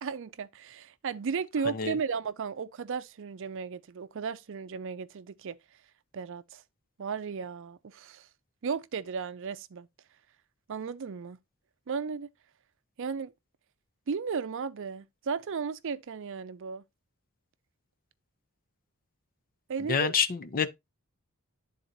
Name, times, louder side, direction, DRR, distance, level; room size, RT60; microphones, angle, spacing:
voice 1, 0.0-5.6 6.1-6.6 7.0-8.3 8.6-9.9 10.7-11.4 11.9-12.3 13.0-13.3 14.1-16.8 19.7-20.1, right 5 dB, 60° right, 0.5 m, -35 dB
voice 2, 19.9-20.7, left 6 dB, 40° left, 0.6 m, -27 dB
11.5 x 3.9 x 2.7 m
head